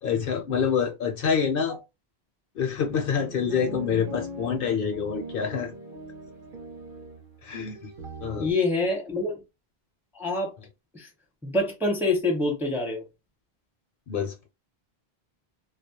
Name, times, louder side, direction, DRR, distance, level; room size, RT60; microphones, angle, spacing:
voice 1, 0.0-1.8 2.6-5.7 7.4-7.9 8.2-8.5 14.1-14.3, left 7 dB, 65° left, 0.7 m, -27 dB
sound 1, 2.9-8.5, right 1 dB, 60° right, 0.8 m, -40 dB
voice 2, 8.4-9.4 10.1-10.5 10.9-11.1 11.4-13.0, left 2 dB, ahead, 0.6 m, -26 dB
2.3 x 2.0 x 2.7 m
omnidirectional pair, 1.1 m